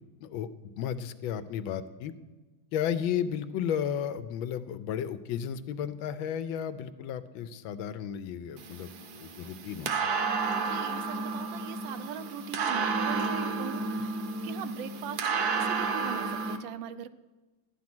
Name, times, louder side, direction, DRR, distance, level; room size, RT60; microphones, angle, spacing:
voice 1, 0.8-2.1 2.7-10.1, left 9 dB, 90° left, 13 dB, 1.4 m, -33 dB
sound 1, 8.6-16.6, right 4 dB, 60° right, 1.3 m, -31 dB
voice 2, 10.5-17.1, right 9 dB, 80° right, 13 dB, 1.4 m, -41 dB
12.5 x 9.5 x 6.0 m, 1.2 s
omnidirectional pair, 2.1 m